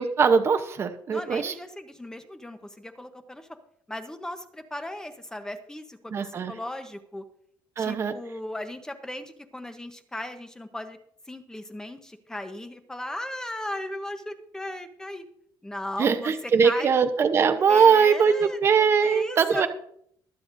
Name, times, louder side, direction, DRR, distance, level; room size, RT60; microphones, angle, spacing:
voice 1, 0.0-1.5 6.1-6.5 7.8-8.1 16.0-19.7, right 6 dB, 35° right, 8 dB, 0.8 m, -21 dB
voice 2, 1.1-3.5 3.9-7.2 7.8-11.0 11.3-15.2 15.6-16.9 17.6-18.6 19.0-19.7, left 1 dB, 10° left, 8 dB, 0.9 m, -37 dB
23.5 x 7.8 x 2.6 m, 0.67 s
cardioid pair, 150°, 8 cm